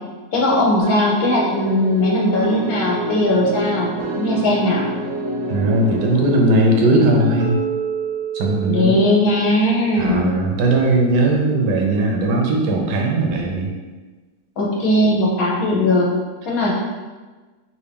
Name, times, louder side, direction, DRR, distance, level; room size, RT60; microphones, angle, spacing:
voice 1, 0.3-4.8 8.7-10.4 14.6-16.1 16.5-16.7, left 1 dB, 70° left, -3 dB, 1.1 m, -18 dB
sound 1, 0.8-9.2, right 3 dB, 70° right, 0.9 m, -27 dB
voice 2, 5.5-7.6 8.3-8.9 10.0-13.7, right 2 dB, 85° right, 0 dB, 1.2 m, -18 dB
3.4 x 2.5 x 3.3 m, 1.3 s
omnidirectional pair, 1.7 m